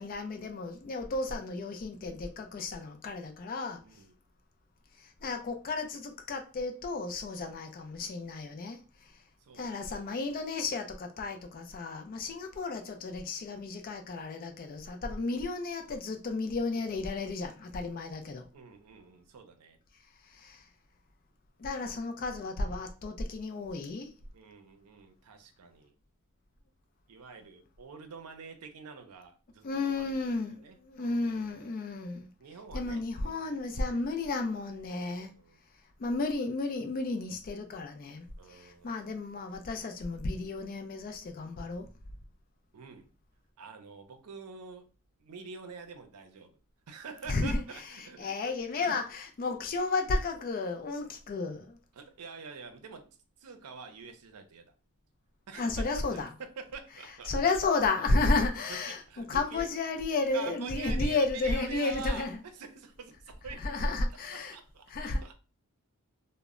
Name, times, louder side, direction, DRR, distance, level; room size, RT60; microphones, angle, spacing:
voice 1, 0.0-3.8 5.0-8.8 9.5-18.4 20.3-20.6 21.6-24.1 29.6-32.3 32.7-35.3 36.0-41.9 47.3-47.6 48.2-51.8 55.5-56.3 57.3-62.4 63.6-64.6 64.9-65.2, left 3 dB, 40° left, 0.3 m, -33 dB
voice 2, 3.8-4.1 9.4-10.0 18.5-19.8 24.3-25.9 27.1-31.9 32.4-34.0 34.9-35.6 38.4-39.0 42.7-43.1 43.6-44.9 45.2-46.6 46.9-48.5 48.8-49.0 51.9-54.7 55.5-57.6 58.7-59.6 60.3-63.8 64.3-65.3, right 5 dB, 85° right, 0.5 m, -47 dB
2.1 x 2.0 x 3.5 m
head